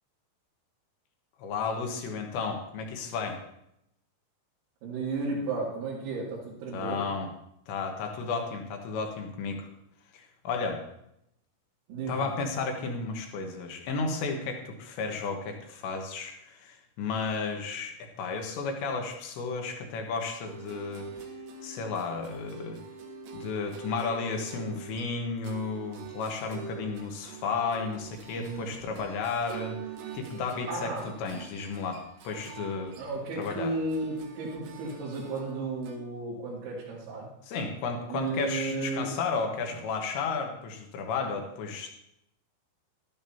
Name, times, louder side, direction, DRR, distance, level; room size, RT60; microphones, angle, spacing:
voice 1, 1.4-3.4 6.7-7.3 7.7-9.7 10.1-10.8 12.1-21.1 21.6-22.8 23.3-29.8 30.1-30.9 31.2-32.9 33.4-33.7 37.5-41.9, left 4 dB, 70° left, 3 dB, 3.2 m, -33 dB
voice 2, 4.8-7.1 11.9-12.3 28.3-28.7 30.7-31.2 33.0-37.3 38.1-39.1, right 3 dB, 90° right, -8 dB, 5.3 m, -34 dB
sound 1, 20.5-36.0, right 6 dB, 70° right, 3.0 m, -45 dB
12.5 x 12.0 x 2.9 m, 0.78 s
omnidirectional pair, 5.9 m